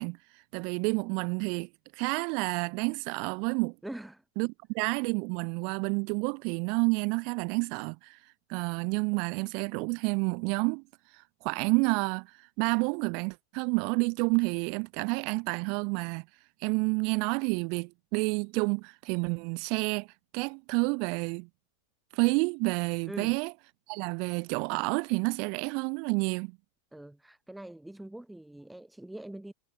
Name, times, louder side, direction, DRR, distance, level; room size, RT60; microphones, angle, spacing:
voice 1, 0.0-3.7 4.4-8.2 8.5-10.8 11.1-16.2 16.6-20.1 20.3-21.5 22.1-23.5 23.9-26.5, right 36 dB, 45° right, 0.9 m, -29 dB
voice 2, 3.8-4.2 23.1-23.4 26.9-29.5, right 1 dB, 5° right, 2.6 m, -43 dB
figure-of-eight pair, 90°, 0 cm